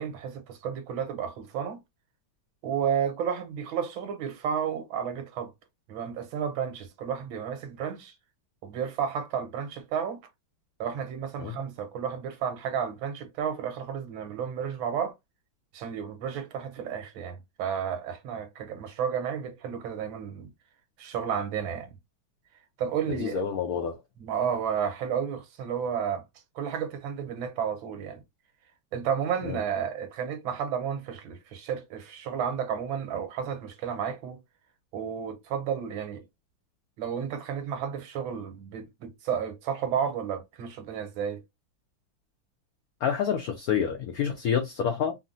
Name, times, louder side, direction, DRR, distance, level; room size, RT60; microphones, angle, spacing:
voice 1, 0.0-1.8 2.6-5.5 5.9-8.1 8.6-10.2 10.8-15.1 15.7-20.5 21.0-22.0 22.8-23.4 24.2-26.2 26.5-28.2 28.9-34.4 34.9-36.2 37.0-41.4, right 8 dB, 85° right, 1.6 m, -32 dB
voice 2, 23.1-24.0 29.4-29.6 43.0-45.2, left 7 dB, 90° left, 0.8 m, -28 dB
3.8 x 2.0 x 2.5 m
omnidirectional pair, 2.1 m